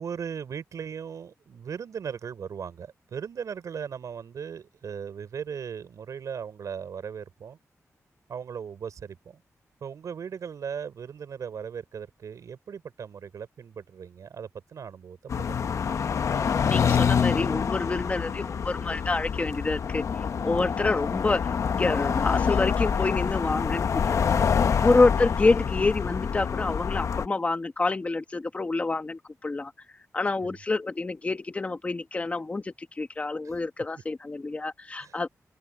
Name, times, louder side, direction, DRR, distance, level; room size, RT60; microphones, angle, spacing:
voice 1, 0.0-7.6 8.3-9.4 9.8-15.9 20.3-20.5 35.0-35.2, right 7 dB, 75° right, 5.7 m, -38 dB
sound 1, 15.3-27.3, left 7 dB, 65° left, 0.8 m, -26 dB
voice 2, 16.6-20.0 20.4-21.5 21.8-24.4 24.8-29.7 30.1-35.3, left 3 dB, 25° left, 1.2 m, -27 dB
wide cardioid pair, 155°, 6 cm